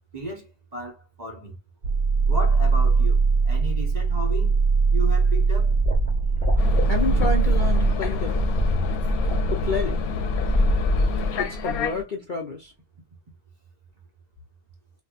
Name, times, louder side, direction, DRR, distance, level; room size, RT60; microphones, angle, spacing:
voice 1, 0.1-1.6 2.3-4.5 4.9-5.7, equal, 35° right, 0.9 m, -34 dB
sound 1, 1.8-7.9, right 4 dB, 60° right, 0.9 m, -21 dB
sound 2, 5.7-11.3, equal, 5° left, 1.0 m, -26 dB
sound 3, 6.6-12.0, left 4 dB, 90° left, 1.1 m, -28 dB
voice 2, 6.9-8.3 9.5-10.0 11.4-12.7, left 4 dB, 50° left, 0.6 m, -29 dB
4.1 x 2.6 x 2.3 m
omnidirectional pair, 1.5 m